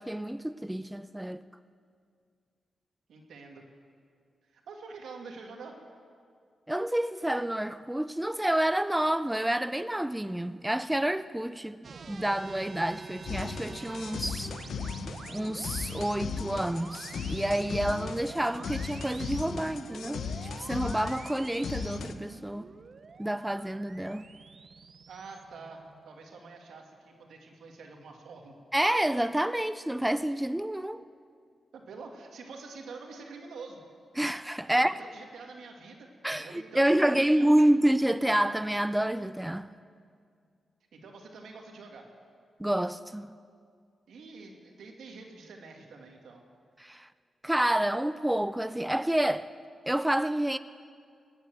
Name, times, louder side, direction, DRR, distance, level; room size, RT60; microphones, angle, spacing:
voice 1, 0.0-1.4 6.7-11.8 12.1-14.5 15.3-20.2 20.6-22.7 23.2-24.2 28.7-31.1 34.2-34.9 36.2-39.7 42.6-43.3 46.8-47.1 47.4-49.5 49.9-50.6, right 1 dB, 5° right, 0.4 m, -28 dB
voice 2, 3.1-3.6 4.5-5.8 25.1-28.5 31.7-33.8 34.7-36.1 36.4-37.7 40.9-42.1 44.1-46.4, right 4 dB, 90° right, 2.1 m, -46 dB
sound 1, 11.8-26.4, right 5 dB, 50° right, 0.7 m, -46 dB
sound 2, 13.3-22.1, left 6 dB, 75° left, 0.8 m, -37 dB
20.0 x 8.9 x 7.7 m
cardioid pair, 100°, 0 cm